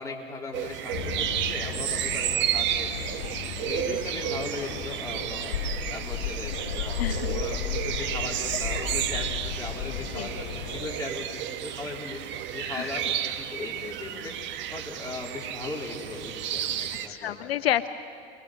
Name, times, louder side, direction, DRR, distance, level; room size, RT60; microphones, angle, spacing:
voice 1, 0.0-3.2 3.6-5.6 5.9-12.2 12.5-14.4 14.7-17.5, left 3 dB, 10° left, -2 dB, 3.8 m, -38 dB
sound 1, 0.5-17.1, right 10 dB, 35° right, 1.2 m, -32 dB
sound 2, 0.9-11.0, left 8 dB, 55° left, 1.7 m, -35 dB
voice 2, 3.6-4.0 7.0-7.4 10.1-10.3 12.7-13.0 17.1-17.9, left 12 dB, 70° left, 13 dB, 0.7 m, -30 dB
26.5 x 21.0 x 6.4 m, 2.5 s
hypercardioid pair, 100°, 32 cm